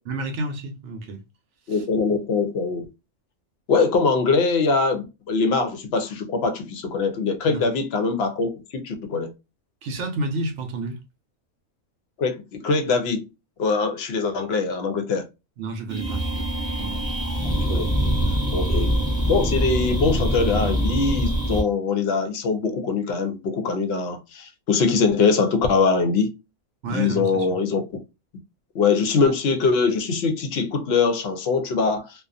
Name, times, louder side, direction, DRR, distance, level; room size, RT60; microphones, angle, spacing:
voice 1, 0.1-1.2 1.7-1.9 7.5-7.7 9.8-11.0 15.6-16.5 16.8-17.0 18.4-18.5 26.8-27.6, right 2 dB, 70° right, 0.9 m, -31 dB
voice 2, 1.7-2.8 3.7-9.3 12.2-13.3 13.6-15.3 17.6-17.9 18.5-18.9 19.3-26.3 26.9-27.8 28.7-32.1, left 4 dB, 60° left, 0.7 m, -22 dB
sound 1, 15.9-21.6, right 1 dB, 5° right, 0.7 m, -24 dB
2.4 x 2.3 x 2.4 m
omnidirectional pair, 1.3 m